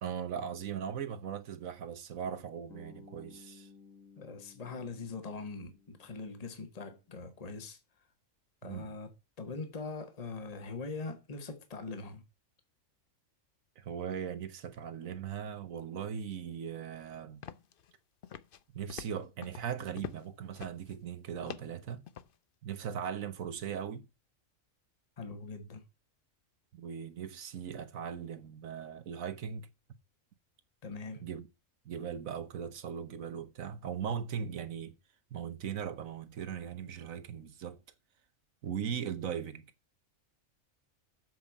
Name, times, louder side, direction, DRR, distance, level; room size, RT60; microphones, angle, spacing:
voice 1, 0.0-3.7 8.6-8.9 13.8-17.4 18.7-22.0 22.6-24.0 26.7-29.7 31.2-31.5 31.8-34.9 35.3-37.8 38.6-39.7, right 8 dB, 80° right, 1.5 m, -39 dB
Bass guitar, 2.7-6.8, left 4 dB, 80° left, 2.2 m, -57 dB
voice 2, 4.2-7.8 8.6-12.2 25.2-25.8 30.8-31.2, left 4 dB, 30° left, 1.4 m, -42 dB
sound 1, 17.4-17.9 18.2-18.6 18.9-20.3 20.6-21.0 21.5-22.3, left 9 dB, 55° left, 0.7 m, -45 dB
7.8 x 5.1 x 7.2 m
omnidirectional pair, 1.4 m